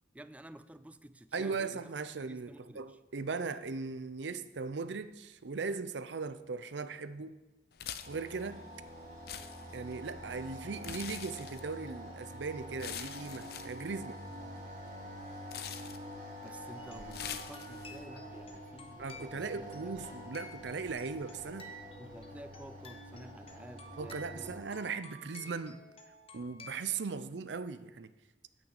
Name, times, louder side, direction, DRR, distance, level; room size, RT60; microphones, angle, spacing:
voice 1, 0.1-3.0 16.4-20.0 22.0-24.9, right 1 dB, 10° right, 13 dB, 0.3 m, -52 dB
voice 2, 1.3-7.4 8.1-8.6 9.7-14.2 19.0-21.7 24.0-25.8 26.3-28.1, right 4 dB, 85° right, 12 dB, 0.6 m, -38 dB
sound 1, 7.7-18.1, left 9 dB, 60° left, 0.6 m, -47 dB
sound 2, 8.0-24.6, equal, 45° right, 2.9 m, -47 dB
sound 3, 16.8-26.9, left 1 dB, 35° left, 1.1 m, -53 dB
8.9 x 6.4 x 8.1 m, 1.1 s
head